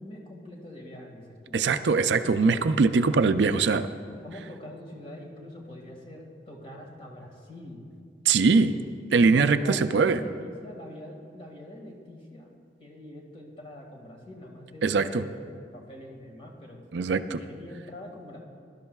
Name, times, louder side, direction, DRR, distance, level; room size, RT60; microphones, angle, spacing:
voice 1, 0.0-2.6 3.1-3.2 4.0-7.9 8.5-8.8 9.1-12.5 12.8-18.4, left 1 dB, 30° left, 0 dB, 1.9 m, -43 dB
voice 2, 1.5-3.9 8.3-8.7 9.1-10.2 14.8-15.2 16.9-17.4, right 4 dB, 75° right, 10 dB, 0.4 m, -22 dB
21.5 x 12.0 x 2.3 m, 2.2 s
head